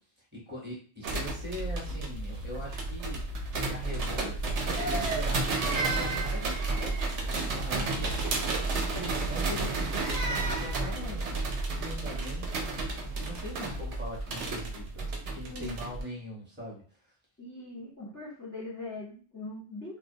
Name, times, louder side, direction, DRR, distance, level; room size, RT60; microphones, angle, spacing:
voice 1, 0.3-12.7 13.0-16.8, equal, 10° right, -4 dB, 0.8 m, -42 dB
sound 1, 1.0-16.0, right 3 dB, 80° right, 0.9 m, -32 dB
Crying sobbing, 4.8-7.3 9.5-10.9, right 3 dB, 60° right, 0.4 m, -35 dB
voice 2, 17.4-20.0, left 2 dB, 20° left, -7 dB, 0.5 m, -41 dB
2.2 x 2.1 x 2.6 m, 0.41 s
omnidirectional pair, 1.2 m